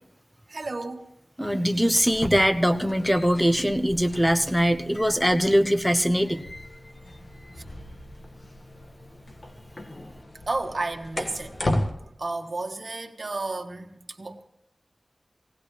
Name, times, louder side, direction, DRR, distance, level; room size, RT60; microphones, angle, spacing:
voice 1, 0.5-1.1 10.5-11.5 12.2-13.9 14.2-14.4, right 2 dB, 55° right, 3 dB, 1.6 m, -32 dB
voice 2, 1.4-6.4, equal, 5° left, 8 dB, 1.0 m, -22 dB
sound 1, 1.8-11.9, left 1 dB, 45° left, 1.7 m, -36 dB
19.5 x 17.5 x 3.3 m, 0.76 s
wide cardioid pair, 80°, 0 cm